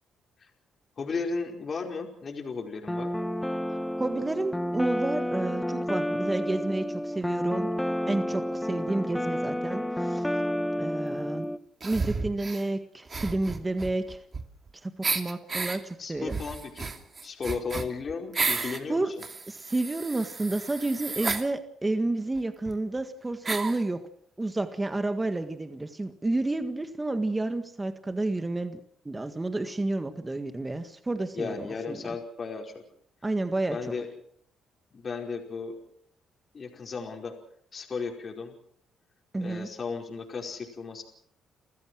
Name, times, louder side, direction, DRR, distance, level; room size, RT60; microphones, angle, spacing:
voice 1, 1.0-3.1 16.0-16.9 17.2-19.2 31.3-32.7 33.7-34.1 34.9-35.8 36.5-37.3 37.7-38.5 39.4-41.0, left 4 dB, 40° left, 2 dB, 5.0 m, -35 dB
sound 1, 2.9-11.6, equal, 5° left, 1.1 m, -30 dB
voice 2, 4.0-7.7 8.1-10.3 10.8-11.5 11.8-14.2 14.8-16.4 18.9-19.1 19.5-24.0 24.4-28.8 29.1-32.2 33.2-33.8 39.3-39.7, right 2 dB, 20° right, 9 dB, 1.7 m, -30 dB
sound 2, 11.8-12.6 13.1-14.7 15.0-15.8 16.3-18.8 19.2-21.5 22.4-22.5 22.7-22.8 23.4-23.8, right 4 dB, 35° right, 2.7 m, -32 dB
30.0 x 15.5 x 6.3 m, 0.63 s
cardioid pair, 90°, 0 cm